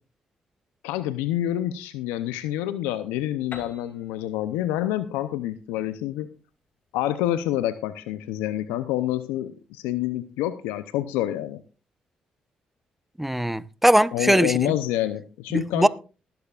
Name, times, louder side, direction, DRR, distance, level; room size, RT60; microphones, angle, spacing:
voice 1, 0.8-6.3 6.9-11.6 14.1-15.9, left 13 dB, 85° left, 0.6 m, -27 dB
Piano, 3.5-7.2, left 5 dB, 60° left, 2.6 m, -47 dB
voice 2, 13.2-14.7 15.5-15.9, right 1 dB, 5° right, 0.9 m, -20 dB
19.5 x 12.0 x 2.4 m
hypercardioid pair, 50°, 3 cm